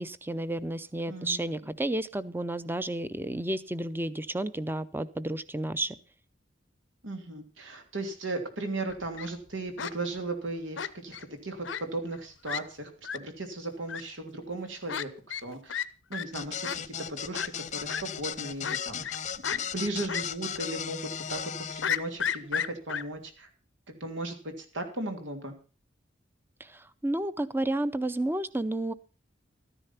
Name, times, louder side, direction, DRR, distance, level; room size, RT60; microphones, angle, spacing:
voice 1, 0.0-6.0 26.6-28.9, right 1 dB, 10° right, 15 dB, 0.6 m, -31 dB
voice 2, 1.1-1.8 7.0-15.1 15.4-15.8 16.1-19.0 19.5-21.0 21.3-23.5 23.9-25.5, right 2 dB, 90° right, 5 dB, 3.1 m, -36 dB
Fowl, 8.9-9.3 9.8-9.9 10.8-11.2 11.6-11.8 12.1-12.2 12.5-12.6 13.0-13.2 13.9-14.0 14.9-15.0 15.3-15.4 15.7-15.9 16.1-16.2 16.6-16.8 17.3-17.5 17.9-18.0 18.6-19.2 19.4-19.6 20.1-20.2 20.6-20.7 21.8-23.0, left 8 dB, 75° left, 0.7 m, -32 dB
sound 1, 16.3-21.8, left 8 dB, 40° left, 0.6 m, -36 dB
13.5 x 10.0 x 5.8 m, 0.36 s
head